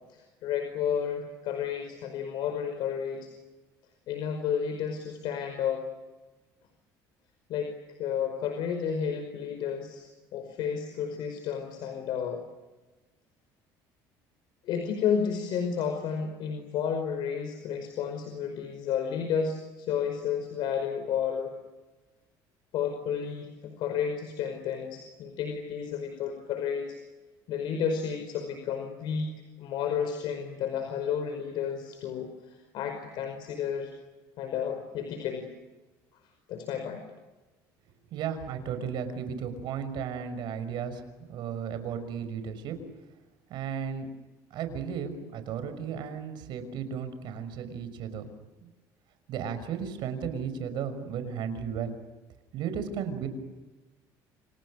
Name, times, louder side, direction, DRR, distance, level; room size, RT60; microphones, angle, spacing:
voice 1, 0.1-3.3 4.1-5.9 7.5-7.7 8.0-12.4 14.6-21.5 22.7-27.0 27.5-29.3 29.6-33.9 34.4-35.5 36.5-37.0, left 7 dB, 70° left, 6 dB, 5.2 m, -31 dB
voice 2, 38.1-41.0 41.3-42.8 43.5-44.1 44.5-48.3 48.6-48.7 49.3-51.9 52.5-53.3, right 7 dB, 65° right, 10 dB, 5.9 m, -34 dB
29.0 x 29.0 x 6.6 m, 1.2 s
cardioid pair, 105°, 8 cm